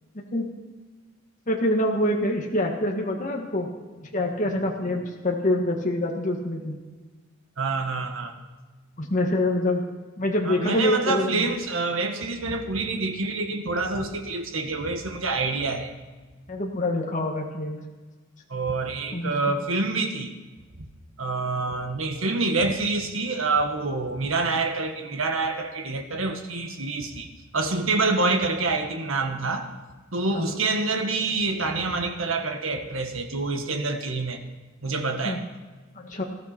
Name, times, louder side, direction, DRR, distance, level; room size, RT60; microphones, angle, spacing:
voice 1, 1.5-3.7 4.0-6.8 9.0-9.8 10.2-11.5 16.5-17.8 19.1-19.6 30.3-30.5 35.2-35.4 36.0-36.2, left 1 dB, 40° left, 0 dB, 1.7 m, -25 dB
voice 2, 7.6-8.3 10.5-15.9 18.5-20.3 21.2-29.7 30.1-34.4 34.8-35.4, right 3 dB, 90° right, 5 dB, 1.7 m, -27 dB
20.0 x 14.5 x 4.4 m, 1.3 s
head